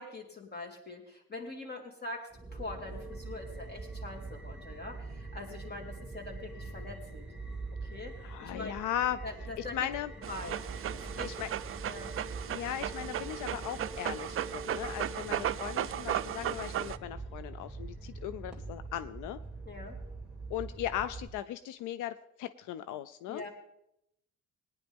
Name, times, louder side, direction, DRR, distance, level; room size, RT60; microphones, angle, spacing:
voice 1, 0.0-7.2 7.9-8.8 9.2-9.8 10.3-10.6 10.9-11.3 11.8-12.1 19.6-20.0 23.3-23.5, left 2 dB, 35° left, 2 dB, 2.8 m, -43 dB
sound 1, 2.3-21.3, right 3 dB, 5° right, 2.3 m, -43 dB
voice 2, 8.2-9.2 9.6-10.1 11.2-11.5 12.5-19.4 20.5-23.4, left 11 dB, 85° left, 13 dB, 0.5 m, -37 dB
Dog, 10.2-17.0, right 11 dB, 45° right, 0.5 m, -36 dB
18.5 x 10.0 x 3.5 m, 0.78 s
cardioid pair, 90°, 30 cm